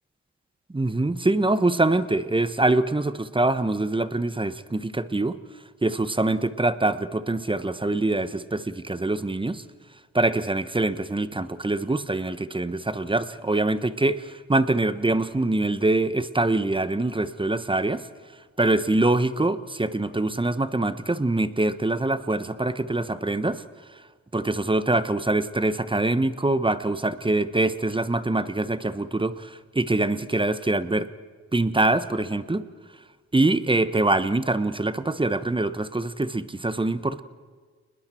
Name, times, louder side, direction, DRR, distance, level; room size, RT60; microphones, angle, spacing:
voice 1, 0.7-5.4 5.8-9.6 10.1-18.0 18.6-23.6 24.3-31.1 31.5-32.6 33.3-37.2, right 2 dB, 15° right, 13 dB, 1.1 m, -24 dB
29.0 x 20.5 x 4.5 m, 1.5 s
supercardioid pair, 45°, 32 cm